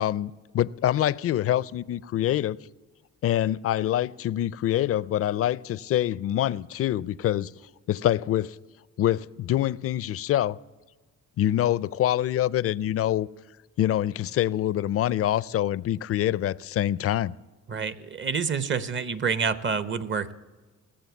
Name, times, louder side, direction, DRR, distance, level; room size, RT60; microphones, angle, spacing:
voice 1, 0.0-2.6 3.2-7.5 7.9-8.6 9.0-10.6 11.4-13.3 13.8-17.3, left 12 dB, 50° left, 0.4 m, -25 dB
voice 2, 17.7-20.3, right 5 dB, 40° right, 0.8 m, -28 dB
18.5 x 7.5 x 7.1 m
cardioid pair, 90°, 30 cm